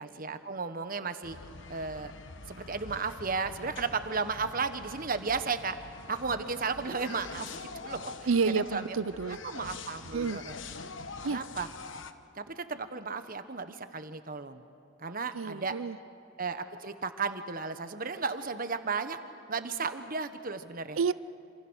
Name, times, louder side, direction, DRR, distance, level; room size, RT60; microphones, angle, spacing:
voice 1, 0.0-1.4 1.7-2.1 2.5-5.8 6.1-8.3 8.5-8.9 9.4-10.5 11.3-11.7 12.3-14.6 15.0-15.7 16.4-19.2 19.5-21.0, right 4 dB, 45° right, 9 dB, 1.3 m, -34 dB
sound 1, 1.2-12.1, left 4 dB, 65° left, 1.1 m, -45 dB
voice 2, 8.3-9.4 10.1-10.4 11.2-11.4 15.3-16.0 21.0-21.1, right 5 dB, 90° right, 16 dB, 0.6 m, -29 dB
27.5 x 27.0 x 6.4 m, 2.6 s
head